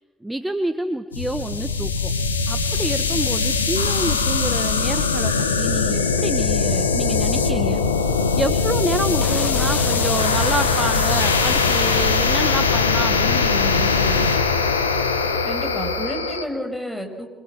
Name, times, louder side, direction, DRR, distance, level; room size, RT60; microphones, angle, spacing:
voice 1, 0.2-2.1 2.5-7.8 8.4-14.3, right 1 dB, 10° right, 9 dB, 1.5 m, -28 dB
sound 1, 1.1-16.4, left 4 dB, 90° left, 1.3 m, -21 dB
sound 2, 9.2-12.1, left 4 dB, 30° left, 1.8 m, -33 dB
voice 2, 15.4-17.3, equal, 10° left, 4 dB, 6.4 m, -30 dB
26.0 x 23.5 x 6.1 m, 1.3 s
figure-of-eight pair, 45°, 0 cm